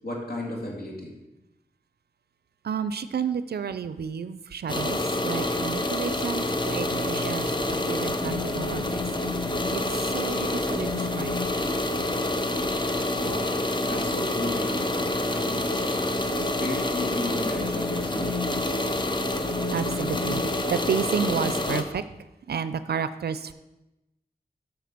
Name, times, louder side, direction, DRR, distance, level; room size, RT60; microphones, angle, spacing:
voice 1, 0.0-1.1 13.2-13.5 13.8-15.0 15.3-16.2 16.6-18.3, left 1 dB, 65° left, -1 dB, 2.2 m, -34 dB
voice 2, 2.6-9.0 9.7-11.4 19.7-22.0 22.5-23.5, right 7 dB, 75° right, 13 dB, 0.4 m, -31 dB
sound 1, 4.7-21.8, left 2 dB, 30° left, 0.9 m, -27 dB
7.6 x 4.8 x 6.6 m, 0.97 s
cardioid pair, 45°, 17 cm